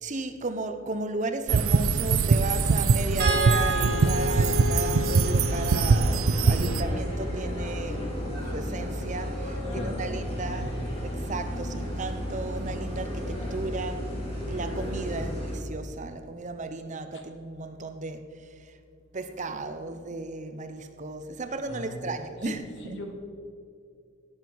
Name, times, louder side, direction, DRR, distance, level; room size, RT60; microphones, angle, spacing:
voice 1, 0.0-10.7 11.0-14.1 14.5-18.7 19.1-23.0, right 3 dB, 35° right, 0.7 m, -35 dB
sound 1, 1.5-6.8, right 4 dB, 85° right, 0.5 m, -23 dB
sound 2, 3.2-9.5 11.0-11.2 11.6-11.7, equal, 50° right, 2.8 m, -33 dB
sound 3, 3.8-15.6, equal, 30° left, 2.9 m, -33 dB
voice 2, 9.7-10.9 15.1-15.4 17.1-17.2 21.7-22.2 22.4-23.1, equal, 60° left, 1.6 m, -39 dB
16.5 x 7.2 x 4.6 m
head